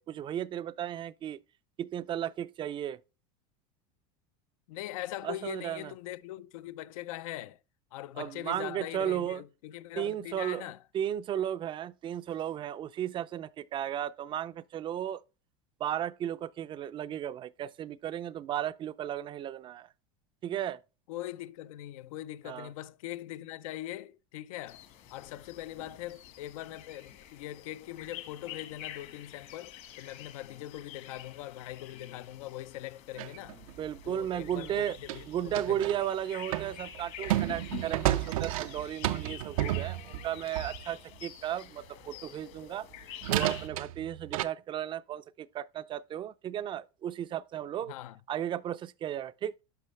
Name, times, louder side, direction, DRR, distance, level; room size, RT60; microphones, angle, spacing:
voice 1, 0.0-1.4 1.8-3.0 5.2-5.9 8.2-9.4 10.0-10.7 10.9-15.2 15.8-19.9 20.4-20.8 22.5-22.7 33.8-35.0 35.3-42.9 43.3-47.9 48.3-49.5, right 10 dB, 30° right, 0.4 m, -35 dB
voice 2, 4.7-7.6 7.9-10.8 21.1-24.8 25.1-33.6 34.0-35.8 47.9-48.2, left 14 dB, 80° left, 0.5 m, -41 dB
sound 1, 24.7-43.7, left 11 dB, 55° left, 1.5 m, -48 dB
sound 2, 33.2-36.0 36.5-40.9 42.6-42.7 43.2-44.4, right 14 dB, 85° right, 0.5 m, -32 dB
10.5 x 5.5 x 3.2 m
supercardioid pair, 120°, 17 cm